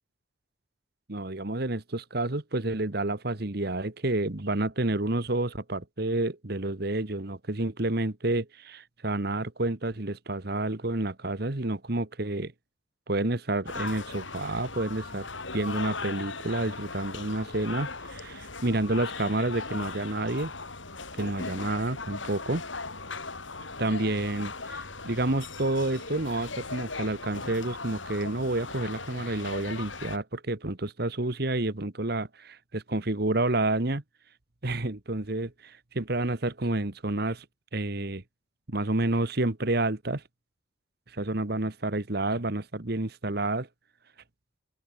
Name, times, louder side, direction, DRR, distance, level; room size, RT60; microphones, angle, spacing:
voice 1, 1.1-12.5 13.1-20.5 21.2-22.6 23.8-34.0 34.6-37.4 37.7-38.2 38.7-40.2 41.1-43.7, right 2 dB, 55° right, 1.5 m, -29 dB
sound 1, 13.7-30.2, left 3 dB, 75° left, 7.7 m, -38 dB
open air
head